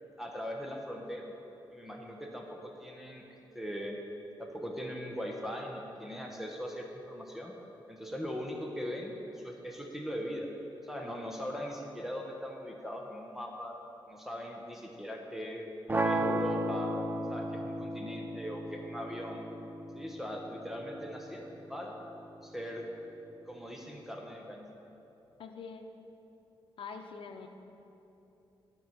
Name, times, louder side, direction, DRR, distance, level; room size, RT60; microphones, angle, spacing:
voice 1, 0.0-1.3 1.7-3.2 3.5-4.0 4.4-7.5 7.9-10.5 10.8-13.8 14.1-15.7 16.0-19.4 19.9-22.0 22.4-22.9 23.5-24.8, equal, 5° right, 0 dB, 1.0 m, -40 dB
sound 1, 15.9-21.9, right 1 dB, 20° right, 0.5 m, -35 dB
voice 2, 25.4-25.9 26.8-27.5, left 5 dB, 70° left, 5 dB, 0.8 m, -44 dB
12.0 x 4.6 x 7.2 m, 3.0 s
cardioid pair, 100°, 9 cm